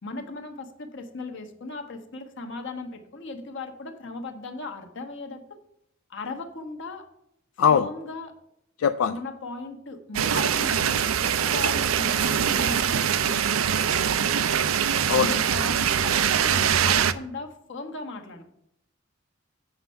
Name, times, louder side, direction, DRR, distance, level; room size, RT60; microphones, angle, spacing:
voice 1, 0.0-5.4 6.1-7.0 7.7-8.3 9.1-14.6 15.1-18.4, left 3 dB, 60° left, 4 dB, 1.2 m, -37 dB
voice 2, 8.8-9.1 15.1-15.4, left 7 dB, 85° left, 9 dB, 0.4 m, -20 dB
sound 1, 10.1-17.1, right 8 dB, 80° right, 0.5 m, -23 dB
7.9 x 5.4 x 5.6 m, 0.78 s
head